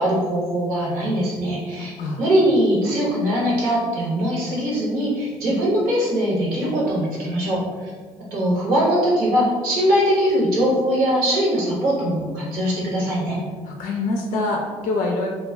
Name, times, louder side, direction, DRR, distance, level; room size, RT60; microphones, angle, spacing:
voice 1, 0.0-1.9 2.2-7.9 8.3-13.4, equal, 70° right, -5 dB, 1.0 m, -21 dB
voice 2, 1.8-2.2 13.6-15.3, left 2 dB, 55° left, 1 dB, 0.4 m, -25 dB
2.3 x 2.2 x 3.3 m, 1.5 s
hypercardioid pair, 45°, 16 cm